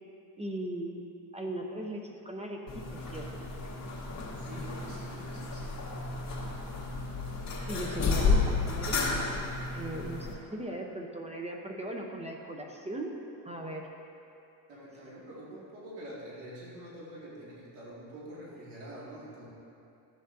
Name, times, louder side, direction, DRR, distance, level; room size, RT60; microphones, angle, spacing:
voice 1, 0.4-1.0 1.3-3.3 7.7-9.4 9.7-13.1 13.4-13.9, right 1 dB, 15° right, 1 dB, 0.7 m, -38 dB
sound 1, 2.7-10.3, left 4 dB, 40° left, 2.1 m, -32 dB
voice 2, 4.3-5.9 14.7-19.5, right 1 dB, 85° right, -7 dB, 2.2 m, -46 dB
13.0 x 7.8 x 2.6 m, 2.8 s
cardioid pair, 115°, 41 cm